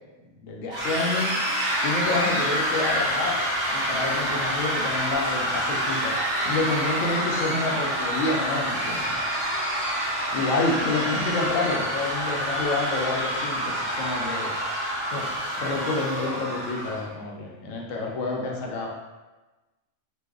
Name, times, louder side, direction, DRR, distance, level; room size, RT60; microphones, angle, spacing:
voice 1, 0.4-1.3 1.8-6.1 6.4-9.2 9.7-9.8 10.3-14.5 15.1-18.9, left 3 dB, 85° left, -1 dB, 1.0 m, -28 dB
sound 1, 0.7-17.0, equal, 65° right, 1.1 m, -27 dB
3.1 x 2.0 x 3.5 m, 1.1 s
omnidirectional pair, 1.4 m